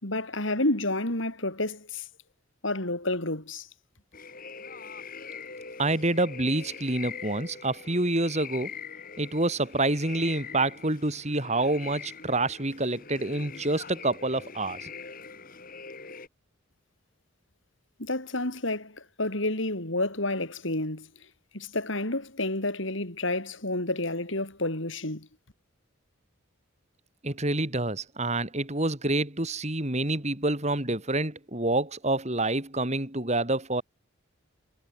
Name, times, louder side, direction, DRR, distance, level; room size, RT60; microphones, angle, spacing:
voice 1, 0.0-2.1 2.6-3.7 18.0-21.1 21.5-25.3, left 2 dB, 65° left, 5.0 m, -30 dB
sound 1, 4.1-16.3, left 6 dB, 40° left, 2.9 m, -43 dB
voice 2, 5.8-8.7 9.2-14.9 27.2-33.8, right 2 dB, 35° right, 3.4 m, -27 dB
head